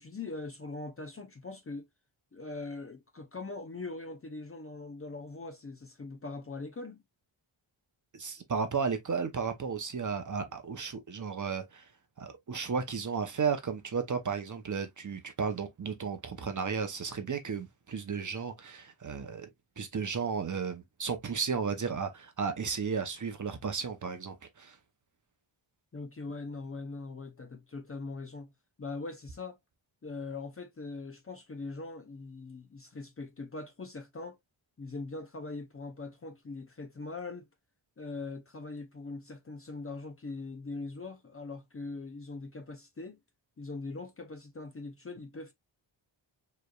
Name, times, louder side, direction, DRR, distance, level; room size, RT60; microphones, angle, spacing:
voice 1, 0.0-1.9 2.3-7.0 25.9-28.5 28.8-29.6 30.0-34.4 34.8-37.5 38.0-43.2 43.6-45.5, left 3 dB, 30° left, 0.5 m, -41 dB
voice 2, 8.1-11.9 12.2-19.5 19.8-24.8, right 5 dB, 40° right, 0.7 m, -34 dB
4.8 x 3.2 x 2.3 m
wide cardioid pair, 175°, 48 cm